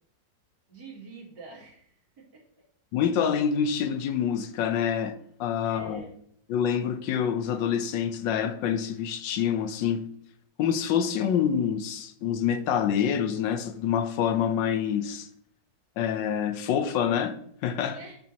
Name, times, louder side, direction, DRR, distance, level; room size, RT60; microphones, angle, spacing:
voice 1, 0.7-2.4 5.6-6.1 17.9-18.2, right 3 dB, 65° right, 2.8 m, -46 dB
voice 2, 2.9-6.1 6.5-10.0 10.6-15.3 16.0-18.0, left 8 dB, 80° left, 1.4 m, -26 dB
12.5 x 4.5 x 2.8 m
omnidirectional pair, 2.0 m